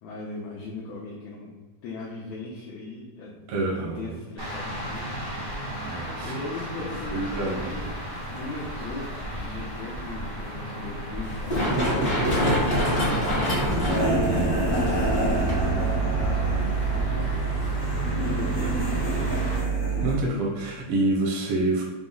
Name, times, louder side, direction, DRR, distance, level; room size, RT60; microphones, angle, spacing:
voice 1, 0.0-3.4 3.7-5.1 6.2-7.8 8.3-13.7 14.4-17.5 18.3-19.5 19.8-20.1, left 3 dB, 75° left, -4 dB, 1.7 m, -38 dB
voice 2, 3.5-4.2 5.8-6.6 7.1-7.8 14.3-14.8 18.5-18.8 20.0-21.8, right 2 dB, 80° right, -1 dB, 1.2 m, -28 dB
sound 1, 4.4-19.6, equal, 60° right, 0.7 m, -35 dB
Run, 11.2-18.8, equal, 40° left, 1.2 m, -28 dB
sound 2, 13.6-20.2, right 3 dB, 60° left, 1.7 m, -26 dB
5.8 x 2.1 x 3.7 m, 1.2 s
omnidirectional pair, 3.8 m